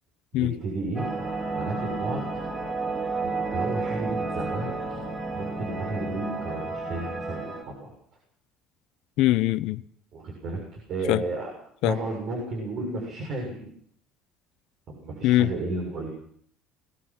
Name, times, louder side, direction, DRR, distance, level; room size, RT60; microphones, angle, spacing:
voice 1, 0.3-2.4 3.2-5.1 5.3-7.9 10.1-11.5 11.8-13.7 14.9-16.1, right 2 dB, 55° right, 6.7 m, -33 dB
sound 1, 1.0-7.6, right 3 dB, 30° right, 7.4 m, -31 dB
voice 2, 9.2-9.8 11.1-11.2 11.8-11.9 15.2-15.5, left 15 dB, 70° left, 0.8 m, -21 dB
22.0 x 20.0 x 6.0 m
cardioid pair, 115°, 0 cm